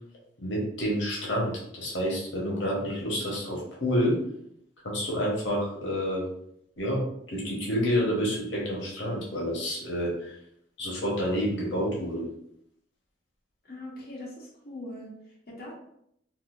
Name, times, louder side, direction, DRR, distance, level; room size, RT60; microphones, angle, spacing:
voice 1, 0.4-4.2 4.8-6.2 6.8-7.0 7.3-10.4 10.8-12.3, equal, 85° left, -3 dB, 1.0 m, -29 dB
voice 2, 13.6-15.7, left 1 dB, 50° left, -5 dB, 1.0 m, -41 dB
3.9 x 2.4 x 2.5 m, 0.73 s
head